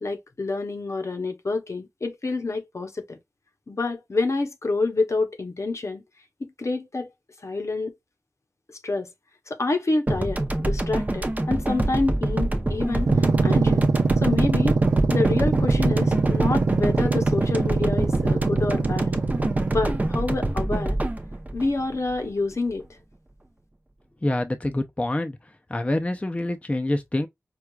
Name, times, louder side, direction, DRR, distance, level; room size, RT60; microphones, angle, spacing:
voice 1, 0.0-3.2 3.7-6.0 6.4-7.1 7.4-7.9 8.8-9.1 9.5-13.1 13.4-13.8 14.2-14.8 15.1-19.1 19.7-21.0 21.5-22.8, left 3 dB, 65° left, 0.7 m, -27 dB
sound 1, 10.1-22.5, right 1 dB, 30° right, 0.6 m, -26 dB
sound 2, 12.9-20.3, right 4 dB, 90° right, 0.4 m, -23 dB
voice 2, 24.2-25.4 25.7-27.3, left 1 dB, 25° left, 0.4 m, -26 dB
4.5 x 2.3 x 2.3 m
wide cardioid pair, 70°, 5 cm